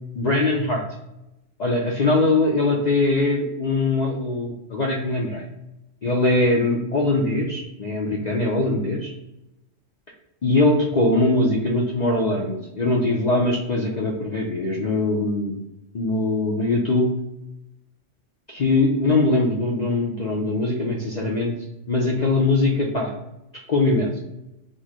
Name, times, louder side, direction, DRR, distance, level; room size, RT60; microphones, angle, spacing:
voice 1, 0.1-0.8 1.6-5.4 6.0-9.1 10.4-15.5 15.9-17.1 18.5-21.5 21.9-23.1 23.7-24.2, left 2 dB, 45° left, -2 dB, 0.6 m, -21 dB
4.3 x 2.1 x 4.6 m, 0.91 s
omnidirectional pair, 1.3 m